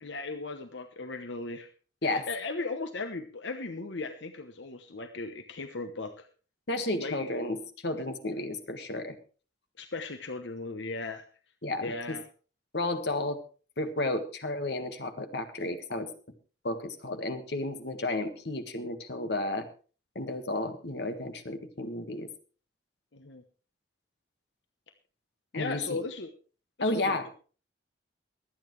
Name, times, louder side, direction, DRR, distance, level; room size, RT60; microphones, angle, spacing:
voice 1, 0.0-1.7 2.0-6.3 7.0-7.3 9.8-11.3 11.8-12.2 23.1-23.4 25.5-26.3 26.8-27.3, left 3 dB, 80° left, 7 dB, 1.1 m, -37 dB
voice 2, 6.7-9.2 11.6-11.9 12.7-13.4 13.8-16.1 16.6-19.7 20.2-22.3 25.5-26.0 26.8-27.3, left 2 dB, 65° left, 7 dB, 1.7 m, -32 dB
23.5 x 9.0 x 3.2 m, 0.37 s
head